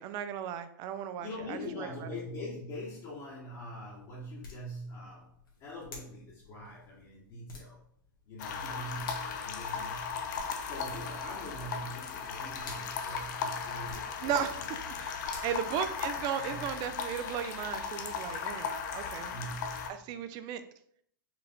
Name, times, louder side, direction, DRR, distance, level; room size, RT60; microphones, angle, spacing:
voice 1, 0.0-1.9 14.2-14.5 15.0-19.3 19.9-20.6, right 9 dB, 40° right, 11 dB, 0.4 m, -36 dB
voice 2, 1.2-5.3 5.6-7.8 8.3-10.2 10.6-14.7 15.4-15.7 16.4-16.7 19.3-20.0, equal, 40° left, -6 dB, 1.2 m, -43 dB
sound 1, 3.3-16.4, left 3 dB, 85° left, 1.4 m, -53 dB
sound 2, 8.4-19.9, left 6 dB, 60° left, 0.6 m, -37 dB
4.6 x 2.5 x 3.5 m, 0.66 s
hypercardioid pair, 115°, 11 cm